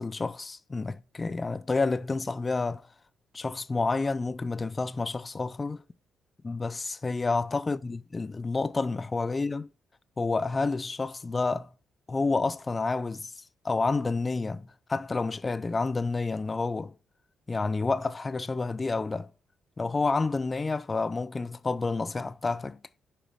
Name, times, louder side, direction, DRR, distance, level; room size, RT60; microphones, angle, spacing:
voice 1, 0.0-2.9 3.3-5.8 6.4-9.7 10.2-11.7 12.1-16.9 17.5-19.3 19.8-22.8, left 3 dB, 25° left, 0.4 m, -29 dB
7.3 x 5.1 x 4.8 m
cardioid pair, 90°, 0 cm